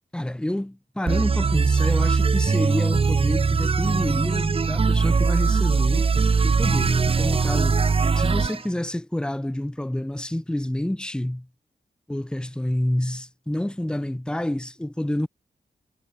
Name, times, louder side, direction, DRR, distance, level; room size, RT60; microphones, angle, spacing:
voice 1, 0.1-6.1 6.4-7.8 8.2-11.5 12.1-15.3, left 1 dB, 5° left, 0.8 m, -28 dB
sound 1, 1.1-8.6, right 5 dB, 35° right, 0.6 m, -21 dB
wide cardioid pair, 150°, 17 cm